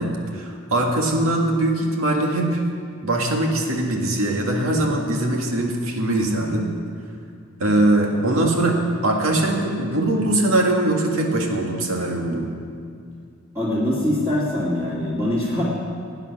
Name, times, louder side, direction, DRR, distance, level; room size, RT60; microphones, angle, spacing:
voice 1, 0.0-2.6 3.0-6.7 7.6-12.5, right 1 dB, 75° right, 1 dB, 2.0 m, -21 dB
voice 2, 13.5-15.6, left 1 dB, 15° right, -9 dB, 2.1 m, -23 dB
18.5 x 9.1 x 5.9 m, 2.3 s
head